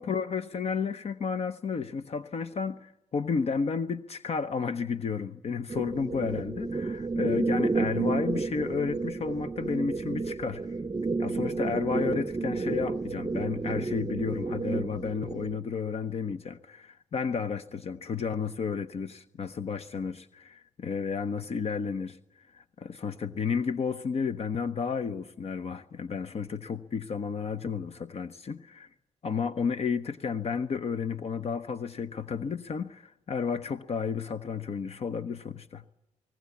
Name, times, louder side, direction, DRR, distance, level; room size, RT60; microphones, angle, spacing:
voice 1, 0.0-10.8 11.2-28.9 29.2-35.8, left 5 dB, 55° left, 11 dB, 0.9 m, -32 dB
sound 1, 5.7-15.6, right 3 dB, 30° right, 0.7 m, -31 dB
21.5 x 19.5 x 8.4 m, 0.91 s
cardioid pair, 70°, 13 cm